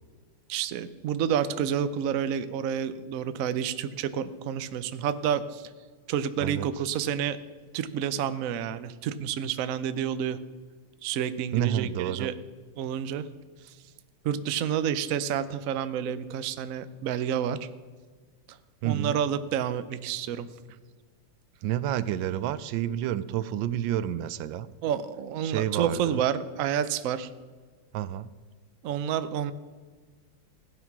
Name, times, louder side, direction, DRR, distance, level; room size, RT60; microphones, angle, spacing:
voice 1, 0.5-5.7 6.1-7.4 7.7-10.4 11.0-12.4 12.8-13.2 13.6-13.7 14.2-17.6 18.5-18.6 18.8-20.5 24.8-27.3 28.8-29.5, right 9 dB, 65° right, 12 dB, 0.9 m, -29 dB
voice 2, 11.5-12.3 18.8-19.2 21.6-24.7 25.4-26.2 27.9-28.3, right 11 dB, 80° right, 16 dB, 1.3 m, -29 dB
16.0 x 9.3 x 6.0 m, 1.5 s
omnidirectional pair, 2.1 m